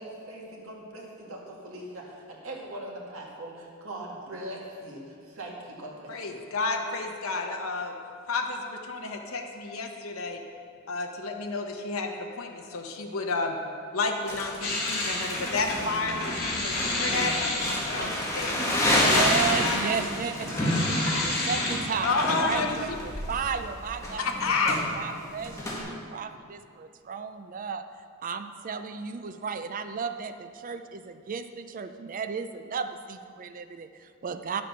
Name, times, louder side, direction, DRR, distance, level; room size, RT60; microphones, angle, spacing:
voice 1, 0.0-6.4, right 1 dB, 75° right, -2 dB, 2.0 m, -41 dB
voice 2, 6.1-8.0 8.3-10.4 10.9-13.6 13.9-18.8 19.1-19.2 19.6-20.1 20.6-20.7 22.0-22.8 24.2-24.8, left 3 dB, 80° left, 2 dB, 0.9 m, -31 dB
Crumpling crinkling, 14.3-25.8, left 1 dB, 15° left, 1.8 m, -30 dB
sound 1, 14.6-18.1 18.4-22.7, left 2 dB, 45° left, 2.6 m, -30 dB
voice 3, 19.0-24.3 24.6-27.8 28.2-34.6, right 6 dB, 40° right, 9 dB, 0.4 m, -34 dB
10.5 x 7.5 x 5.6 m, 2.3 s
head